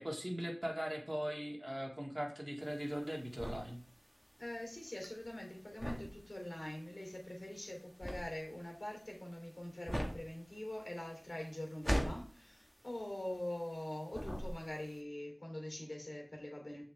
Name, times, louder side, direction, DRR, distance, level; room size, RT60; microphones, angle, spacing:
voice 1, 0.0-3.8, equal, 25° right, 0 dB, 2.1 m, -40 dB
sound 1, 2.6-13.8 14.1-14.9, equal, 5° left, 1.6 m, -41 dB
voice 2, 4.4-16.8, left 1 dB, 65° left, 0 dB, 3.4 m, -44 dB
7.5 x 7.0 x 3.4 m, 0.41 s
wide cardioid pair, 40°, 0 cm